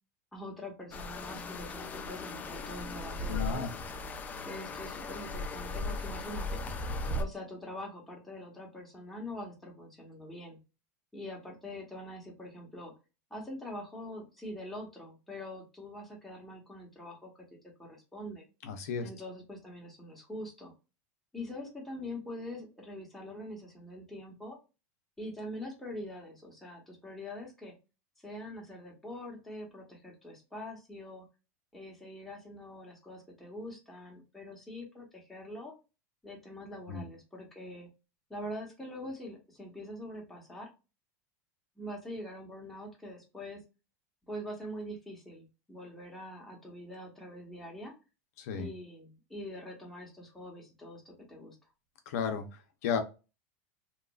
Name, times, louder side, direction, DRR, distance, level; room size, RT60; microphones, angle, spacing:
voice 1, 0.3-3.7 4.4-6.6 7.1-10.6 11.1-12.9 13.3-17.3 17.8-18.4 19.0-20.7 21.3-24.6 25.2-27.7 28.2-31.2 31.7-35.7 36.2-37.9 38.3-40.7 41.8-43.6 44.3-47.9 48.5-51.6, left 1 dB, 5° left, -2 dB, 1.0 m, -44 dB
sound 1, 0.9-7.2, left 2 dB, 20° left, 0.3 m, -37 dB
voice 2, 3.3-3.7 18.6-19.1 36.9-37.1 48.4-48.7 52.1-53.0, left 6 dB, 75° left, 6 dB, 0.6 m, -34 dB
2.9 x 2.4 x 2.2 m, 0.29 s
supercardioid pair, 135°, 8 cm